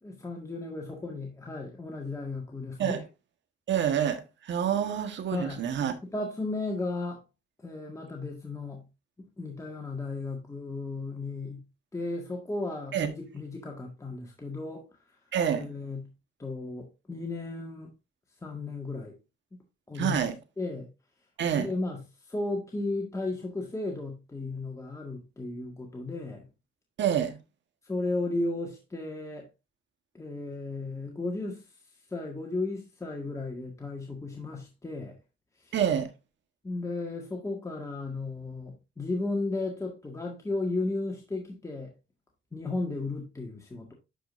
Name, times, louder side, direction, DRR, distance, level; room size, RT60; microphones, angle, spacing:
voice 1, 0.0-3.0 5.3-5.6 6.0-7.2 7.6-8.8 9.2-11.6 11.9-14.9 15.5-16.1 16.4-17.9 18.4-19.1 19.5-19.6 19.9-20.2 20.6-20.9 21.5-22.0 22.3-26.5 27.9-29.5 30.1-31.6 32.1-35.2 35.7-35.8 36.6-41.9 42.5-43.9, left 2 dB, 15° left, 1.7 m, -34 dB
voice 2, 3.7-5.9 12.9-13.1 15.3-15.7 19.9-20.3 21.4-21.7 27.0-27.4 35.7-36.1, right 9 dB, 65° right, 1.4 m, -27 dB
11.5 x 5.1 x 2.6 m
cardioid pair, 90°, 20 cm